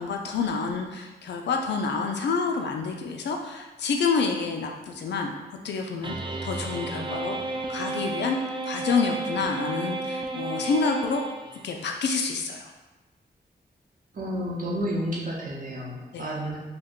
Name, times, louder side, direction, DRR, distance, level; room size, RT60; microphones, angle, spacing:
voice 1, 0.0-6.1 6.4-7.4 7.7-8.4 8.6-11.2 11.6-12.7 16.1-16.2, left 5 dB, 80° left, 3 dB, 0.4 m, -28 dB
sound 1, 6.0-11.8, right 2 dB, 30° right, 0.3 m, -32 dB
voice 2, 14.1-16.6, equal, 50° right, -4 dB, 0.7 m, -31 dB
2.5 x 2.2 x 3.6 m, 1.1 s
cardioid pair, 65°, 18 cm